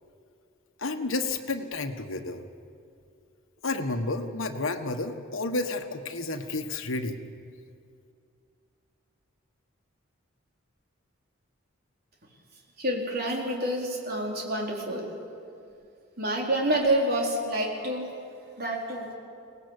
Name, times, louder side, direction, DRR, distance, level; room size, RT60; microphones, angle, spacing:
voice 1, 0.8-2.4 3.6-7.2, left 2 dB, 80° left, 5 dB, 1.5 m, -31 dB
voice 2, 12.8-15.2 16.2-18.1 18.6-19.1, right 1 dB, 50° right, -1 dB, 4.0 m, -28 dB
23.5 x 18.5 x 8.3 m, 2.4 s
head